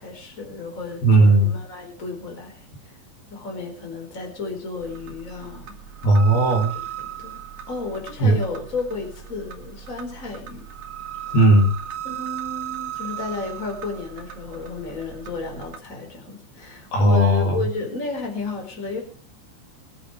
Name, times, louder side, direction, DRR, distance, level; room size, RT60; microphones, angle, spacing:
voice 1, 0.0-2.9 3.3-5.7 6.7-6.8 7.2-10.7 12.0-19.0, left 3 dB, 15° left, 2 dB, 4.3 m, -32 dB
voice 2, 1.0-1.5 6.0-6.7 8.2-8.4 11.3-11.7 16.9-17.6, right 2 dB, 55° left, 1 dB, 4.7 m, -16 dB
sound 1, 4.8-15.8, right 11 dB, 50° right, 2.3 m, -37 dB
24.0 x 8.5 x 5.0 m, 0.40 s
omnidirectional pair, 5.6 m